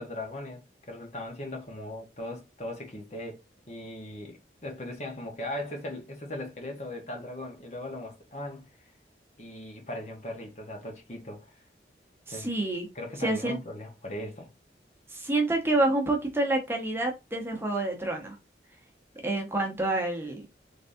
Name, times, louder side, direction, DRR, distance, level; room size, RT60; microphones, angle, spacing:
voice 1, 0.0-3.4 3.7-8.7 9.4-11.5 12.3-12.5 12.9-14.5, left 1 dB, 40° left, 0.9 m, -39 dB
voice 2, 12.3-12.9 13.2-13.6 15.1-18.3 19.2-20.4, right 2 dB, 15° right, 0.7 m, -28 dB
4.0 x 3.4 x 2.6 m
head